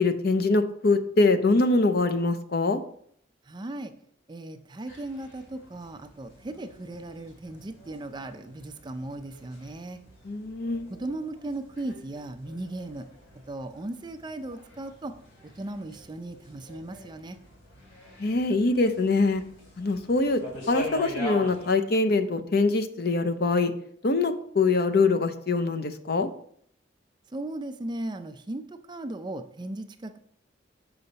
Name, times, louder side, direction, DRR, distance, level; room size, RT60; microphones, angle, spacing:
voice 1, 0.0-2.8 10.2-10.9 18.2-19.4 19.8-20.4 20.7-23.7 24.0-26.3, left 3 dB, 55° left, 9 dB, 0.6 m, -23 dB
voice 2, 3.5-3.9 4.3-10.0 10.9-13.1 13.5-15.1 15.4-17.4 27.3-30.2, right 2 dB, 25° right, 8 dB, 0.4 m, -37 dB
sound 1, 4.9-21.7, left 1 dB, 70° left, 2.5 m, -44 dB
6.9 x 5.5 x 4.0 m, 0.64 s
head